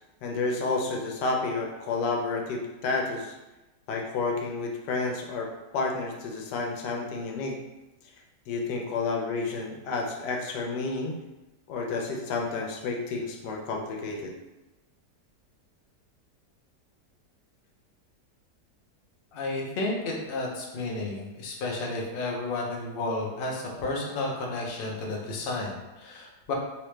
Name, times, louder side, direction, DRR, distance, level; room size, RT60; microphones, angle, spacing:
voice 1, 0.2-3.3 3.9-7.6 8.5-11.2 11.7-14.3, left 3 dB, 90° left, 1 dB, 1.3 m, -30 dB
voice 2, 19.3-26.5, left 2 dB, 60° left, -1 dB, 0.5 m, -32 dB
3.0 x 2.8 x 3.2 m, 1.0 s
omnidirectional pair, 1.8 m